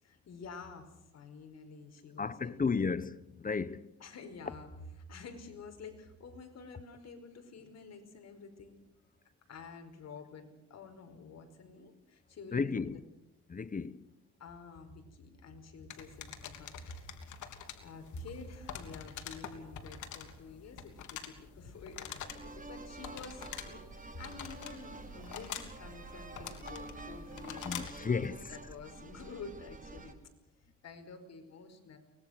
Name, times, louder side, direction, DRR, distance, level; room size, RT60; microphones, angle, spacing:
voice 1, 0.0-2.9 4.0-4.7 5.1-8.8 9.5-13.0 14.4-30.2 30.8-32.0, left 4 dB, 60° left, 5.1 m, -49 dB
voice 2, 2.2-3.9 12.5-13.0 13.5-14.0 27.6-28.4, left 5 dB, 25° left, 1.0 m, -33 dB
sound 1, 15.9-28.0, left 8 dB, 75° left, 3.2 m, -46 dB
sound 2, 22.3-30.1, right 3 dB, 25° right, 3.6 m, -48 dB
24.0 x 20.5 x 6.6 m
cardioid pair, 90°, 30 cm